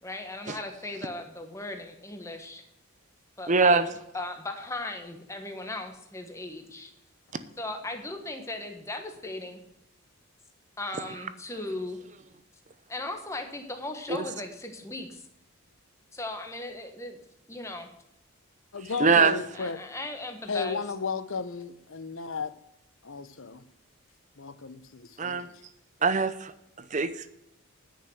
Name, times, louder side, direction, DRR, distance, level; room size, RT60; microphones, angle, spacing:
voice 1, 0.0-2.6 3.4-3.8 4.1-6.9 7.6-9.6 10.8-12.0 12.9-15.2 16.1-17.2 17.5-17.9 19.5-20.8, left 2 dB, 15° left, 1.3 m, -37 dB
voice 2, 3.5-3.9 18.8-19.4 25.2-25.5 26.0-26.5 26.9-27.3, right 4 dB, 35° right, 0.7 m, -22 dB
voice 3, 18.7-19.8 20.5-22.5 23.0-23.6 24.4-25.5, left 5 dB, 60° left, 0.7 m, -34 dB
10.0 x 5.9 x 8.0 m
head